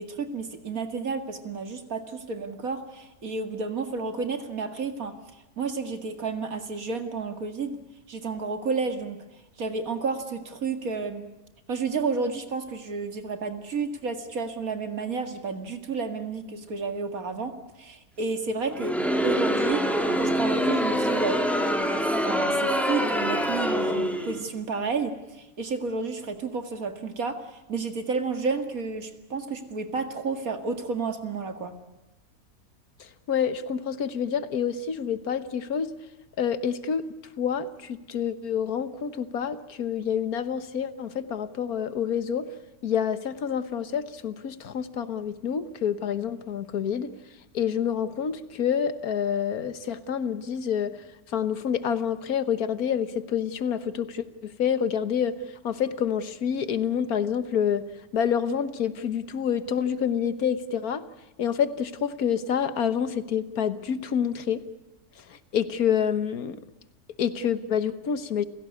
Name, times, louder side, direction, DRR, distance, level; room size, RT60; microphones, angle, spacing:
voice 1, 0.0-5.1 5.6-7.8 8.1-9.2 9.6-11.3 11.7-18.9 19.2-19.9 20.2-27.4 27.7-31.7, right 4 dB, 70° right, 7 dB, 2.5 m, -31 dB
Crowd, 18.7-24.4, equal, ahead, 2.6 m, -25 dB
voice 2, 33.0-35.9 36.4-37.0 37.4-42.5 42.8-47.1 47.5-51.0 51.3-55.3 55.6-57.9 58.1-61.0 61.4-64.6 65.3-66.6 67.2-68.4, left 8 dB, 75° left, 13 dB, 1.7 m, -27 dB
29.5 x 17.0 x 9.6 m, 0.99 s
omnidirectional pair, 1.6 m